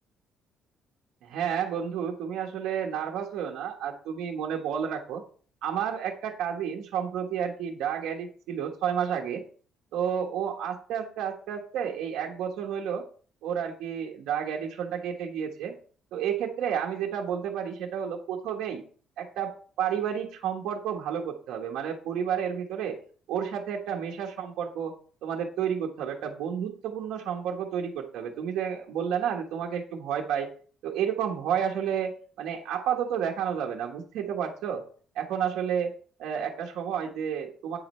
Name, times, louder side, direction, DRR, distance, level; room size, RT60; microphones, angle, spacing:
voice 1, 1.2-5.2 5.6-9.4 9.9-13.0 13.4-15.7 16.1-18.8 19.2-23.0 23.3-24.9 25.2-30.5 30.8-34.8 35.1-35.9 36.2-37.8, right 8 dB, 85° right, 0 dB, 1.2 m, -31 dB
8.5 x 5.1 x 4.3 m, 0.44 s
cardioid pair, 145°, 0 cm